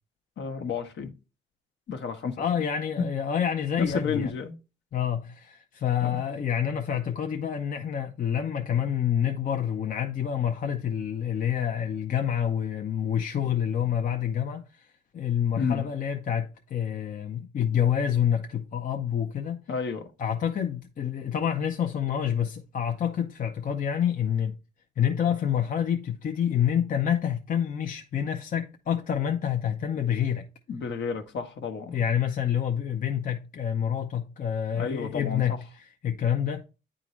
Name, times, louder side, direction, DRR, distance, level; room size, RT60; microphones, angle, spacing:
voice 1, 0.4-1.1 1.9-2.3 3.8-4.5 6.0-6.2 15.6-15.9 19.7-20.1 30.7-32.0 34.7-35.6, left 5 dB, 65° left, 1.1 m, -31 dB
voice 2, 2.4-4.3 4.9-14.9 15.1-19.6 20.2-24.5 25.0-30.5 31.9-36.6, left 9 dB, 45° left, 0.7 m, -27 dB
9.4 x 3.7 x 3.0 m
cardioid pair, 90°, 20 cm